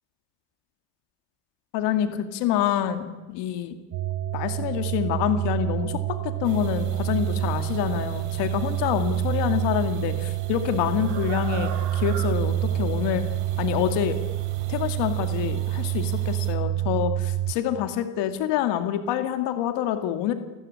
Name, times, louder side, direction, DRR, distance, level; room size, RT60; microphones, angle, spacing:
voice 1, 1.7-3.8 4.3-13.2 13.6-14.2 14.7-20.3, left 11 dB, 60° left, 8 dB, 2.4 m, -27 dB
sound 1, 3.9-17.5, right 13 dB, 40° right, 1.0 m, -27 dB
sound 2, 6.4-16.5, right 8 dB, 65° right, 3.5 m, -41 dB
29.5 x 14.5 x 10.0 m, 1.2 s
cardioid pair, 165°, 47 cm